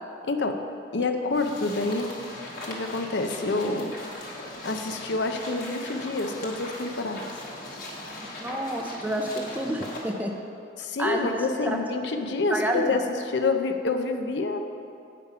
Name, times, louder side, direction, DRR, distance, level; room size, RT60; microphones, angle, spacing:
voice 1, 0.2-0.6 0.9-2.1 2.7-3.9 4.6-7.2 10.8-14.6, left 3 dB, 70° left, 6 dB, 0.6 m, -27 dB
sound 1, 1.3-10.1, left 1 dB, 50° left, 1.3 m, -39 dB
voice 2, 8.4-10.3 11.0-11.8 12.5-13.0, right 1 dB, 10° right, 2 dB, 0.4 m, -29 dB
8.3 x 5.2 x 5.5 m, 2.6 s
head